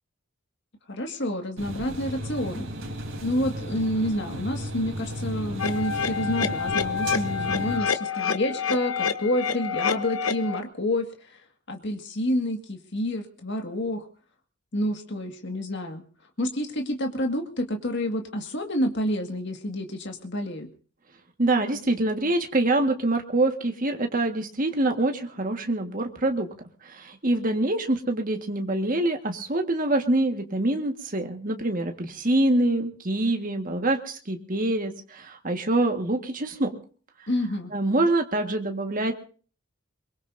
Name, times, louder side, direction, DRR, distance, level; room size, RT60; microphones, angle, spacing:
voice 1, 0.9-2.7 3.2-11.4 11.7-14.1 14.7-16.0 16.4-20.7 37.3-37.7, left 1 dB, 55° left, 4 dB, 1.9 m, -28 dB
sound 1, 1.6-7.8, equal, 70° right, 3.7 m, -34 dB
sound 2, 5.6-10.6, left 6 dB, 90° left, 1.0 m, -28 dB
voice 2, 21.4-26.5 26.8-36.7 37.7-39.1, right 2 dB, 40° right, 4 dB, 1.7 m, -25 dB
23.0 x 22.5 x 2.7 m, 0.40 s
head